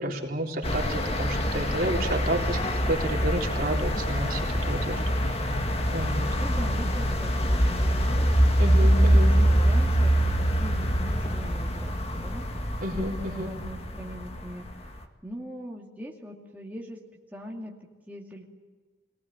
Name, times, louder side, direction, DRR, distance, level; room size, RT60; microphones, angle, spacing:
voice 1, 0.0-2.6 2.9-5.0 5.9-6.3 8.6-9.3 12.8-13.6, right 1 dB, 55° right, 0 dB, 3.8 m, -30 dB
sound 1, 0.6-15.0, equal, 35° left, 2.1 m, -24 dB
voice 2, 6.0-17.0 17.3-18.4, equal, 10° right, -2 dB, 2.4 m, -41 dB
24.5 x 19.0 x 8.7 m, 1.4 s
head